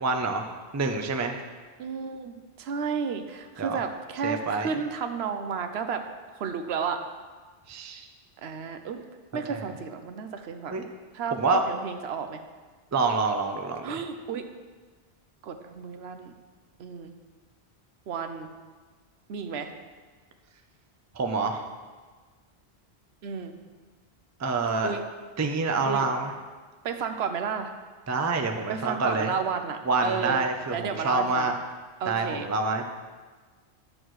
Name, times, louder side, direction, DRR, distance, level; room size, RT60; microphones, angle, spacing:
voice 1, 0.0-1.4 3.6-3.8 4.2-4.7 7.7-8.1 9.5-9.7 10.7-10.8 11.3-11.6 12.9-14.0 21.1-21.6 24.4-24.9 25.4-26.3 28.1-29.3 29.8-31.5 32.1-32.8, right 3 dB, 25° right, 4 dB, 0.4 m, -27 dB
voice 2, 1.8-6.0 6.4-7.0 8.4-9.0 9.3-10.8 11.1-11.4 11.7-12.4 13.8-14.4 15.4-16.3 16.8-17.1 18.1-18.5 19.3-19.7 23.2-23.5 24.8-25.0 25.8-26.1 26.8-27.7 28.7-30.4 30.7-31.5 32.0-32.5, right 6 dB, 80° right, 7 dB, 0.9 m, -32 dB
11.0 x 6.5 x 3.1 m, 1.4 s
omnidirectional pair, 1.1 m